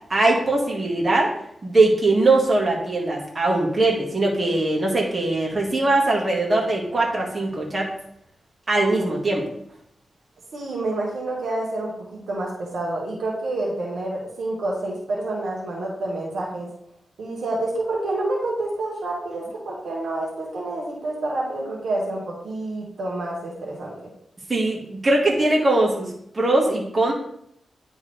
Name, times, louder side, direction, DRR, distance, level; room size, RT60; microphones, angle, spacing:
voice 1, 0.1-1.3 1.6-7.9 8.7-9.5 24.5-27.1, right 2 dB, 40° right, -2 dB, 1.8 m, -21 dB
voice 2, 10.5-16.7 17.2-24.1, right 2 dB, 85° right, -3 dB, 1.4 m, -28 dB
9.9 x 3.5 x 3.4 m, 0.73 s
cardioid pair, 60°, 0 cm